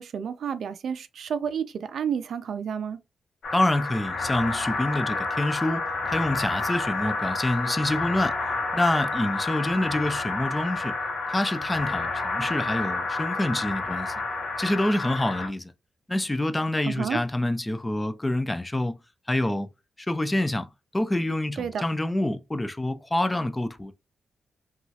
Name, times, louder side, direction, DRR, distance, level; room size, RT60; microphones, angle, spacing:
voice 1, 0.0-3.0 16.8-17.2 21.6-21.8, right 7 dB, 70° right, 0.4 m, -30 dB
sound 1, 3.4-15.5, left 3 dB, 65° left, 0.7 m, -29 dB
voice 2, 3.5-8.4 8.7-10.9 11.3-14.1 14.6-15.7 16.1-19.0 19.3-19.7 20.0-20.7 20.9-23.9, left 1 dB, 10° left, 0.3 m, -27 dB
2.9 x 2.3 x 2.7 m
wide cardioid pair, 140°, 0 cm